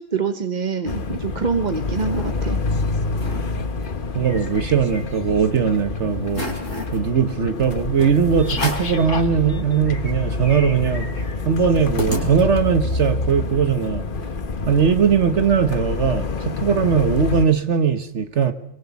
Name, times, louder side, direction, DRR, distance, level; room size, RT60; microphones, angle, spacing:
voice 1, 0.0-2.6, right 5 dB, 40° right, 7 dB, 1.2 m, -25 dB
sound 1, 0.9-17.5, left 3 dB, 45° left, 1.2 m, -27 dB
sound 2, 1.7-2.3 2.8-2.9 3.1-3.4 3.8-5.4 5.8-5.9 6.3-7.0 7.7-7.8 8.4-9.0 9.5-9.6 9.8-12.8, left 1 dB, 80° left, 4.7 m, -32 dB
voice 2, 4.1-6.5 6.9-11.1 11.4-14.0 14.7-18.5, right 7 dB, 65° right, 9 dB, 1.4 m, -20 dB
23.0 x 23.0 x 7.1 m, 0.75 s
omnidirectional pair, 1.3 m